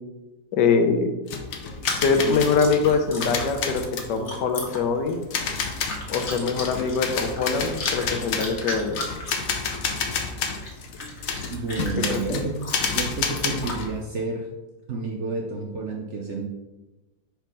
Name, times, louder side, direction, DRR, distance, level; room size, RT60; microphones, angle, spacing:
voice 1, 0.5-1.1 2.0-3.8 4.1-5.2 6.1-9.0 12.1-12.4, left 5 dB, 80° left, 6 dB, 1.3 m, -23 dB
sound 1, 1.3-14.0, left 5 dB, 65° left, 1.0 m, -30 dB
Chewing mastication, 1.7-13.8, left 2 dB, 40° left, 1.4 m, -37 dB
voice 2, 11.5-12.6 12.9-14.5 14.9-16.4, right 4 dB, 60° right, -1 dB, 0.8 m, -30 dB
4.6 x 4.4 x 5.3 m, 1.1 s
omnidirectional pair, 1.9 m